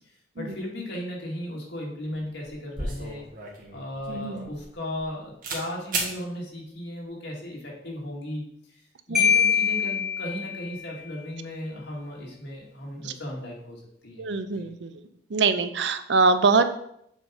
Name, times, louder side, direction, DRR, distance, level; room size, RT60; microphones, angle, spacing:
voice 1, 0.0-3.3 3.7-8.8 9.1-14.7, left 1 dB, 75° left, -2 dB, 2.2 m, -36 dB
sound 1, 2.2-2.3 2.4-5.1 5.4-5.6 5.9-6.1, right 3 dB, 50° right, 1.6 m, -33 dB
voice 2, 4.1-4.5 9.1-9.2 13.0-13.1 14.2-15.0 15.3-16.7, right 4 dB, 75° right, 10 dB, 0.6 m, -23 dB
Marimba xylophone, 9.1-10.9, left 7 dB, 5° right, 1.4 m, -23 dB
7.5 x 3.8 x 4.8 m, 0.73 s
head